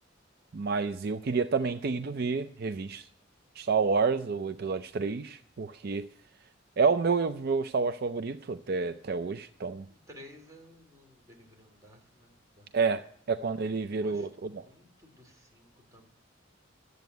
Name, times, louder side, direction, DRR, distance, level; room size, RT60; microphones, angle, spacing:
voice 1, 0.5-3.0 3.6-6.1 6.8-9.8 12.7-13.0 13.3-14.6, right 4 dB, 50° right, 10 dB, 0.4 m, -29 dB
voice 2, 9.9-12.9 13.8-16.1, left 1 dB, 15° right, 0 dB, 3.0 m, -55 dB
12.5 x 8.0 x 9.3 m, 0.63 s
head